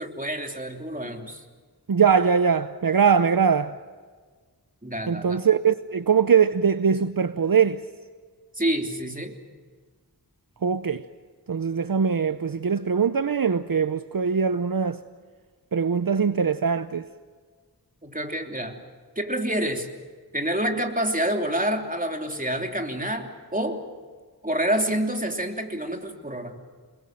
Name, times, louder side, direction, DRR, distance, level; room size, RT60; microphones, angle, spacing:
voice 1, 0.0-1.4 4.8-5.4 8.6-9.4 18.0-18.8 19.2-19.9 20.3-23.8 24.4-26.6, right 1 dB, 20° right, 3.1 m, -28 dB
voice 2, 1.9-3.7 5.1-7.8 10.6-11.0 11.5-15.0 15.7-17.0, right 6 dB, 65° right, 0.7 m, -22 dB
28.5 x 21.0 x 7.7 m
wide cardioid pair, 45°, 38 cm